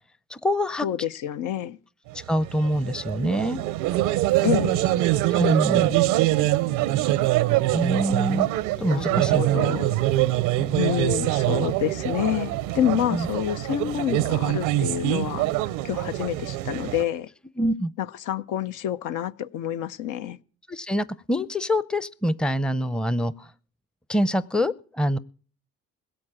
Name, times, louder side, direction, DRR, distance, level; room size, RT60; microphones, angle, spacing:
voice 1, 0.3-0.9 2.3-3.6 5.3-6.0 7.7-8.5 8.8-9.4 10.6-10.8 13.1-13.3 17.6-17.9 20.7-23.5 24.1-25.2, equal, 5° left, 0.6 m, -25 dB
voice 2, 0.8-1.8 4.4-4.8 8.9-10.0 10.7-15.4 15.8-17.3 18.0-20.4, left 11 dB, 70° left, 0.6 m, -28 dB
sound 1, 2.1-17.0, right 15 dB, 90° right, 0.6 m, -24 dB
16.5 x 7.7 x 8.8 m
supercardioid pair, 65°, 32 cm